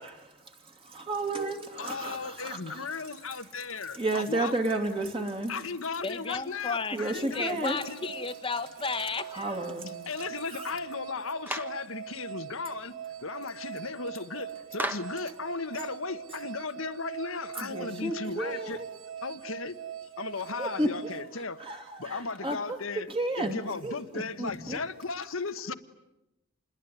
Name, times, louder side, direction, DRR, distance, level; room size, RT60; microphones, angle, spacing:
voice 1, 1.1-2.9 3.9-5.5 6.9-7.8 9.3-9.9 10.5-10.7 17.6-18.9 20.6-20.9 21.6-22.8 23.1-24.8, right 2 dB, 25° right, 2.6 m, -32 dB
voice 2, 1.8-4.5 5.5-8.1 10.1-12.9 13.2-18.8 19.2-19.8 20.2-21.6 22.0-23.1 23.4-25.7, left 4 dB, 70° left, 1.3 m, -36 dB
voice 3, 6.0-9.7, left 4 dB, 25° left, 1.2 m, -34 dB
sound 1, 7.6-22.0, right 9 dB, 70° right, 1.2 m, -43 dB
Clapping, 11.5-11.8 14.8-15.2, right 1 dB, 10° right, 1.2 m, -33 dB
28.0 x 21.5 x 9.5 m
head